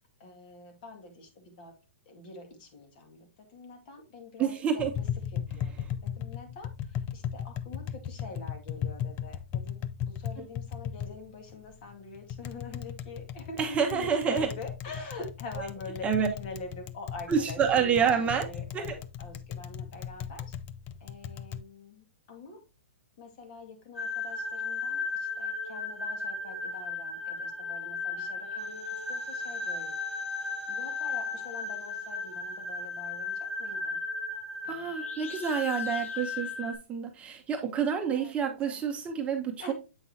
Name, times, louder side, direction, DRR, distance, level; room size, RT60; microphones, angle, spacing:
voice 1, 0.2-1.7 2.1-5.1 5.3-5.7 6.0-20.5 21.0-22.6 23.2-29.9 30.7-34.0 34.6-34.9 37.6-38.8 39.6-39.7, left 3 dB, 45° left, 4 dB, 2.3 m, -45 dB
voice 2, 4.4-4.9 13.6-14.5 16.0-16.3 17.3-18.4 18.7-18.8 34.7-39.7, right 7 dB, 20° right, 4 dB, 1.0 m, -28 dB
Tap, 4.8-21.6, left 9 dB, 30° left, 0.5 m, -37 dB
sound 1, 23.9-36.7, left 4 dB, 85° left, 2.1 m, -35 dB
8.1 x 5.4 x 2.9 m, 0.29 s
hypercardioid pair, 135°, 7 cm